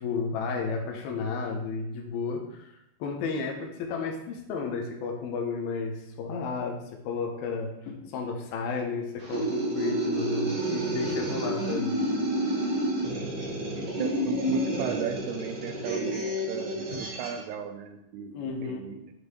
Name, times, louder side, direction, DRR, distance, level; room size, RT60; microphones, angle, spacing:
voice 1, 0.0-2.7 3.0-11.9 18.3-18.9, left 4 dB, 75° left, 1 dB, 2.8 m, -32 dB
sound 1, 9.2-17.4, right 1 dB, 50° right, 1.4 m, -30 dB
voice 2, 13.1-19.1, right 8 dB, 85° right, 7 dB, 2.6 m, -37 dB
11.5 x 5.3 x 3.2 m, 0.83 s
omnidirectional pair, 4.6 m